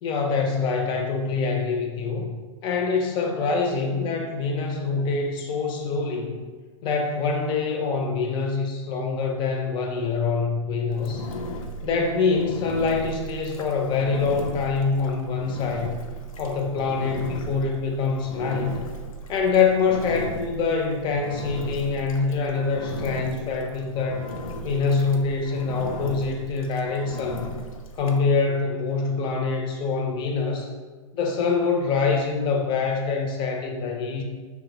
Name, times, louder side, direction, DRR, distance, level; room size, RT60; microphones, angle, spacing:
voice 1, 0.0-2.3 2.6-6.4 6.8-11.3 11.8-16.0 16.4-18.7 19.3-24.3 24.6-27.6 28.0-30.7 31.1-34.2, left 4 dB, 25° left, 2 dB, 0.5 m, -25 dB
Engine, 10.9-28.2, equal, 80° left, 0.5 m, -37 dB
3.0 x 2.1 x 3.5 m, 1.4 s
hypercardioid pair, 120°, 17 cm